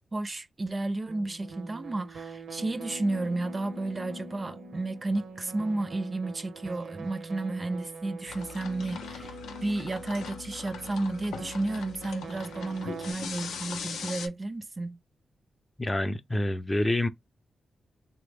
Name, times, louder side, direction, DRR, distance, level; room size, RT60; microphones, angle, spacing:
voice 1, 0.1-9.4 9.6-15.0, right 2 dB, 40° right, 0.4 m, -32 dB
sound 1, 1.1-13.1, right 2 dB, 85° right, 0.6 m, -43 dB
sound 2, 8.3-14.3, left 6 dB, 85° left, 0.4 m, -41 dB
voice 2, 15.8-17.1, left 1 dB, 25° left, 0.4 m, -27 dB
3.1 x 2.0 x 3.4 m
supercardioid pair, 45°, 0 cm